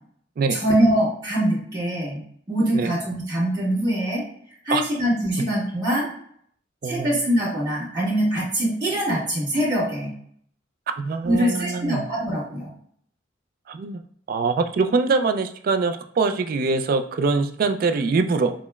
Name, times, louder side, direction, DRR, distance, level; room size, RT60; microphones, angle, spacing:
voice 1, 0.5-2.2 2.5-4.2 4.6-6.1 6.8-10.1 11.2-12.7, right 1 dB, 20° right, -9 dB, 1.5 m, -23 dB
voice 2, 11.0-12.0 13.7-14.0 14.3-18.5, right 4 dB, 55° right, 7 dB, 0.3 m, -23 dB
5.0 x 2.0 x 2.2 m, 0.64 s
head